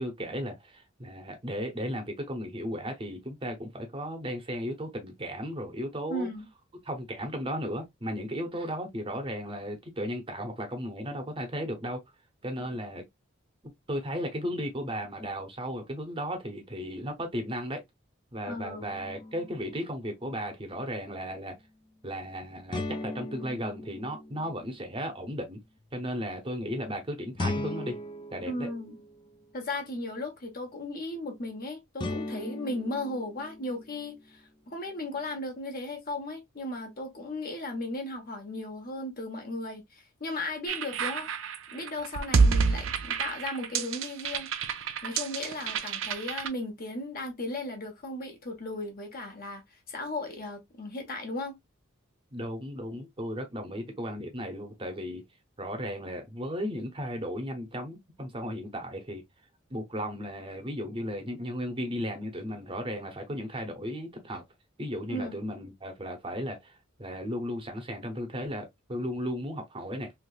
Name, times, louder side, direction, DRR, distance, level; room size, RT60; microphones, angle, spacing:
voice 1, 0.0-6.3 6.8-12.0 12.4-13.0 13.9-17.8 18.3-21.5 22.0-25.6 25.9-28.0 28.3-28.7 52.3-55.2 55.6-59.2 59.7-64.4 64.8-70.1, equal, 25° right, 0.7 m, -35 dB
voice 2, 6.1-6.5 18.5-18.9 28.5-28.9 29.5-41.3 41.7-44.5 45.0-49.6 49.9-51.6 65.1-65.4, left 2 dB, 45° left, 1.2 m, -36 dB
sound 1, 18.8-19.7 22.7-24.9 27.4-29.5 32.0-34.2, left 2 dB, 25° left, 0.4 m, -38 dB
sound 2, 40.7-46.5, right 5 dB, 70° right, 0.5 m, -28 dB
3.3 x 3.1 x 2.4 m
head